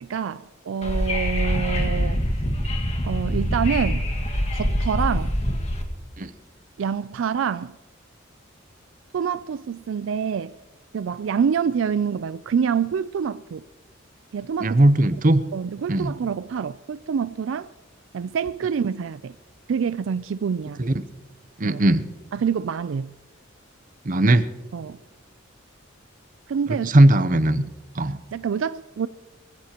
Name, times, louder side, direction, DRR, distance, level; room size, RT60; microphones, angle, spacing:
voice 1, 0.0-2.2 3.0-4.1 4.5-5.3 6.8-7.7 9.1-10.5 10.9-13.6 14.3-14.8 15.5-17.7 18.1-19.4 19.7-20.8 21.6-21.8 22.3-23.1 24.7-25.0 26.5-26.9 28.3-29.1, right 7 dB, 70° right, 0.4 m, -26 dB
Wind / Subway metro underground, 0.8-5.8, equal, 30° left, 1.7 m, -24 dB
voice 2, 14.6-15.4 15.9-16.1 20.8-20.9 21.6-22.1 24.0-24.5 26.8-27.6 27.9-28.2, right 1 dB, 40° right, 0.7 m, -18 dB
24.0 x 15.5 x 2.9 m
head